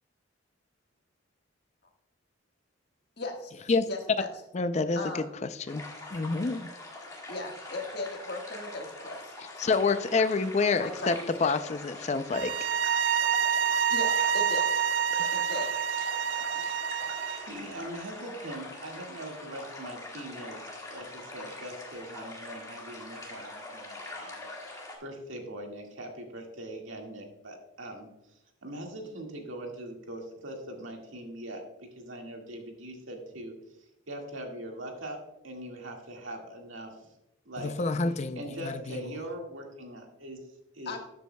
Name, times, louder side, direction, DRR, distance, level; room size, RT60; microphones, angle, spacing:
voice 1, 3.2-3.5 3.9-4.3 4.9-5.3 7.3-9.8 10.8-11.5 13.9-14.7 15.3-15.7 16.3-16.7 40.8-41.0, left 2 dB, 55° left, 2 dB, 1.6 m, -38 dB
voice 2, 4.5-5.0 5.7-5.8 6.1-6.7 9.6-11.1 11.4-12.5 15.2-15.3 37.6-39.0, left 4 dB, 35° left, 11 dB, 0.4 m, -27 dB
sound 1, 5.7-25.0, left 2 dB, 15° left, 1.8 m, -43 dB
sound 2, 12.3-17.5, right 8 dB, 65° right, 0.5 m, -27 dB
voice 3, 17.4-20.6 20.9-24.5 25.0-28.1 28.6-31.6 32.0-33.5 34.1-35.2 35.4-37.0 37.5-37.8 38.0-40.4 40.7-40.9, right 1 dB, 80° right, 1 dB, 1.9 m, -41 dB
13.0 x 8.2 x 2.2 m, 0.87 s
head